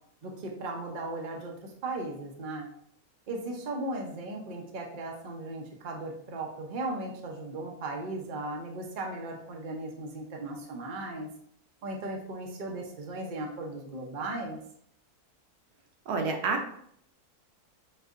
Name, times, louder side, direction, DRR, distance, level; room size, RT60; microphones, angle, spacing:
voice 1, 0.2-2.7 3.3-11.3 11.8-14.6, right 2 dB, 45° right, 1 dB, 0.6 m, -37 dB
voice 2, 16.1-16.7, right 4 dB, 80° right, 3 dB, 1.2 m, -28 dB
5.8 x 2.7 x 2.4 m, 0.68 s
omnidirectional pair, 1.6 m